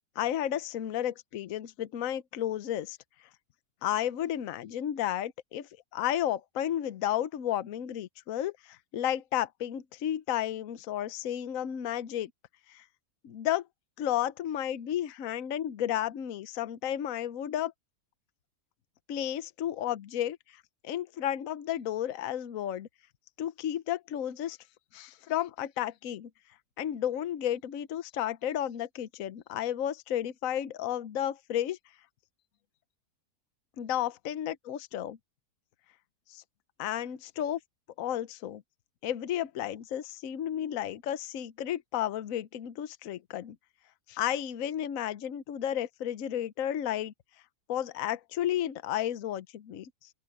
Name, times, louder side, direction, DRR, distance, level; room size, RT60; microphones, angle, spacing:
voice 1, 0.2-3.0 3.8-12.3 12.7-12.8 13.2-13.7 14.0-17.7 19.1-22.9 23.4-24.6 24.9-26.3 26.8-31.8 33.8-35.2 36.3-36.4 36.8-37.6 38.0-38.6 39.0-43.6 44.1-47.1 47.7-50.1, left 11 dB, 60° left, 1.1 m, -32 dB
open air
omnidirectional pair, 1.7 m